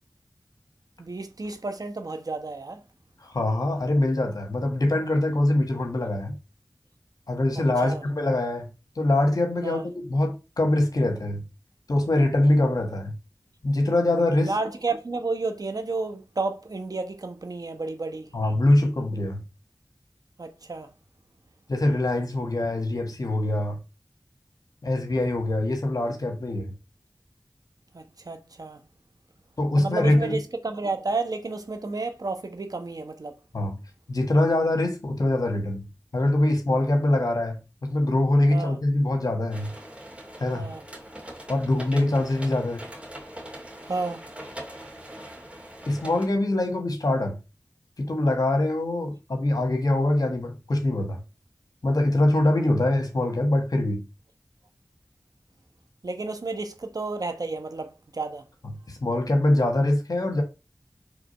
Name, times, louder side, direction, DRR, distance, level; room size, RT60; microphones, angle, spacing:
voice 1, 1.0-2.8 7.8-8.0 9.6-9.9 14.4-18.3 20.4-20.9 27.9-28.8 29.8-33.4 38.5-38.8 40.5-40.8 43.9-44.2 56.0-58.5, right 3 dB, 75° right, 1.1 m, -31 dB
voice 2, 3.2-6.3 7.3-8.7 9.0-11.4 11.9-13.1 13.6-14.5 18.3-19.4 21.7-23.8 24.8-26.7 29.6-30.3 33.5-33.7 34.1-35.8 36.1-39.7 40.4-40.7 41.5-42.9 45.9-47.4 48.0-51.2 51.8-54.0 58.9-60.4, left 1 dB, 75° left, 1.6 m, -23 dB
sound 1, 39.5-46.2, right 1 dB, 20° right, 2.1 m, -42 dB
4.9 x 3.5 x 5.5 m
wide cardioid pair, 40°, 6 cm